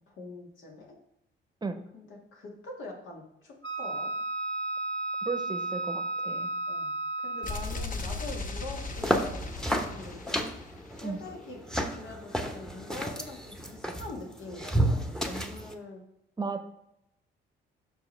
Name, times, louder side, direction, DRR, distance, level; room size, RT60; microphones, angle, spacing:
voice 1, 0.1-1.0 1.9-4.2 6.7-10.4 10.9-11.6 11.9-16.0, left 2 dB, 80° left, -1 dB, 2.0 m, -44 dB
Wind instrument woodwind instrument, 3.6-7.8, right 2 dB, 25° left, 1.7 m, -33 dB
voice 2, 5.2-6.5 11.0-11.2 16.4-16.6, right 4 dB, 20° right, 7 dB, 0.8 m, -34 dB
sound 1, 7.4-11.3, left 3 dB, 45° left, 1.0 m, -38 dB
sound 2, 8.7-15.7, equal, 5° left, 0.8 m, -32 dB
7.2 x 5.9 x 3.3 m, 0.81 s
cardioid pair, 90°, 20 cm